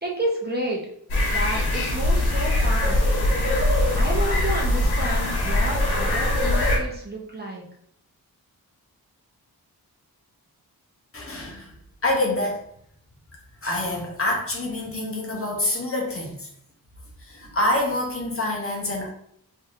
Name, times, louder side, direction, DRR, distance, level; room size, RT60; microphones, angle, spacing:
voice 1, 0.0-0.9 1.3-3.0 3.9-7.6, right 1 dB, 25° right, -2 dB, 0.6 m, -30 dB
sound 1, 1.1-6.8, left 1 dB, 90° left, 0.8 m, -22 dB
voice 2, 11.1-11.7 12.0-12.7 13.6-16.5 17.2-19.1, left 1 dB, 35° left, -1 dB, 0.7 m, -26 dB
3.0 x 2.6 x 2.5 m, 0.68 s
wide cardioid pair, 125°, 38 cm